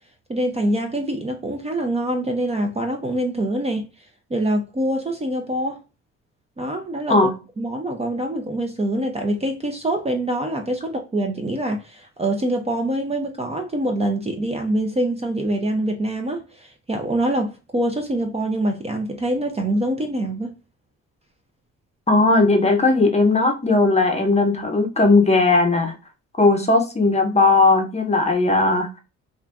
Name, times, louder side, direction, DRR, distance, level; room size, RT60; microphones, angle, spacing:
voice 1, 0.3-3.9 4.3-5.8 6.6-7.3 7.6-20.5, right 1 dB, 20° right, 0.5 m, -25 dB
voice 2, 22.1-25.9 26.4-29.0, left 3 dB, 20° left, 0.7 m, -17 dB
2.7 x 2.5 x 3.3 m
cardioid pair, 90°, 30 cm